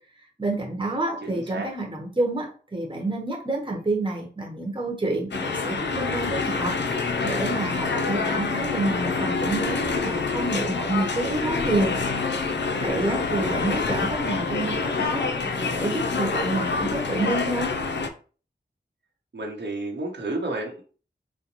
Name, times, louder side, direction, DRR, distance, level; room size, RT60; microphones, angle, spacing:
voice 1, 0.4-11.9 12.8-15.3 15.6-17.8, right 2 dB, 25° right, 0 dB, 1.0 m, -28 dB
voice 2, 1.2-1.7 13.2-13.6 19.3-20.8, right 2 dB, 65° right, -1 dB, 0.9 m, -32 dB
sound 1, 5.3-18.1, left 4 dB, 65° left, 0.5 m, -26 dB
4.0 x 2.1 x 3.0 m, 0.39 s
cardioid pair, 45°, 20 cm